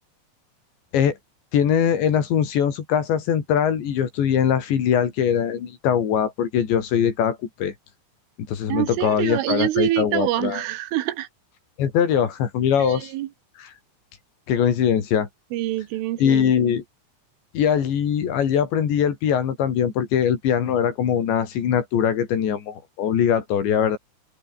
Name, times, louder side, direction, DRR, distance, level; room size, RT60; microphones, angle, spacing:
voice 1, 1.5-7.7 8.5-10.6 11.8-13.1 13.6-13.7 14.5-15.3 16.2-16.8 17.5-24.0, left 8 dB, 65° left, 5.3 m, -22 dB
voice 2, 8.7-11.3 12.8-13.3 15.5-16.7, right 15 dB, 85° right, 3.9 m, -26 dB
omnidirectional pair, 5.6 m